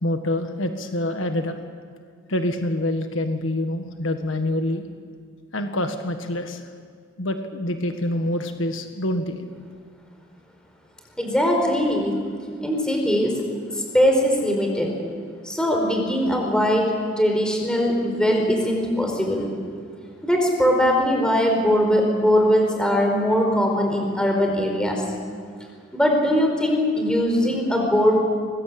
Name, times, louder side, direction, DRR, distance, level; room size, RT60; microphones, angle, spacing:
voice 1, 0.0-1.5 2.3-4.8 5.5-6.6 7.2-9.4, left 1 dB, 75° left, 6 dB, 1.6 m, -26 dB
voice 2, 11.2-12.1 12.6-13.3 13.7-14.9 15.4-16.9 17.2-19.5 20.2-25.0 25.9-28.2, equal, 5° left, 1 dB, 5.0 m, -20 dB
24.5 x 21.0 x 8.7 m, 2.1 s
head